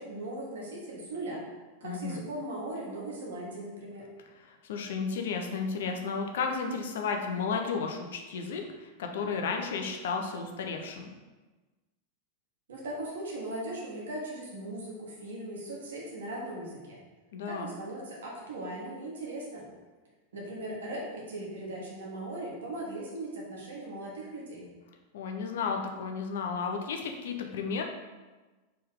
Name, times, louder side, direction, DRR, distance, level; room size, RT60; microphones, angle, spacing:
voice 1, 0.0-1.4 1.8-4.1 12.7-17.0 17.4-19.7 20.3-24.7, right 1 dB, 65° right, -3 dB, 1.3 m, -38 dB
voice 2, 1.8-2.2 4.4-11.1 17.3-17.8 25.1-27.8, left 5 dB, 60° left, 3 dB, 0.6 m, -33 dB
4.2 x 3.3 x 3.7 m, 1.2 s
figure-of-eight pair, 90°, 0 cm